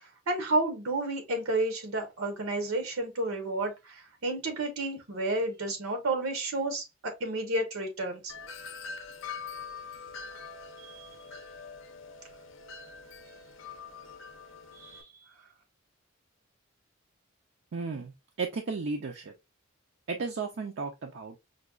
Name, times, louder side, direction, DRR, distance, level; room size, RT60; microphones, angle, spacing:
voice 1, 0.3-8.3 10.8-11.1 14.8-15.1, right 2 dB, 85° right, 0.9 m, -31 dB
Wind chime, 8.3-15.0, left 5 dB, 65° left, 0.5 m, -44 dB
voice 2, 17.7-19.3 20.1-21.4, right 4 dB, 60° right, 0.4 m, -34 dB
5.0 x 2.2 x 2.3 m
head